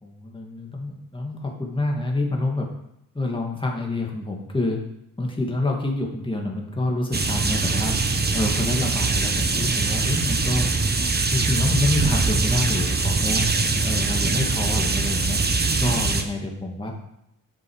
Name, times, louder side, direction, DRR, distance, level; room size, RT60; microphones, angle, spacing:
voice 1, 0.0-2.7 3.1-4.8 5.2-8.0 8.3-10.7 11.3-13.5 13.8-15.4 15.8-16.9, left 2 dB, 15° left, 0 dB, 2.0 m, -27 dB
sound 1, 7.1-16.2, right 3 dB, 30° right, 1.1 m, -22 dB
7.2 x 7.0 x 4.7 m, 0.82 s
cardioid pair, 65°, 35 cm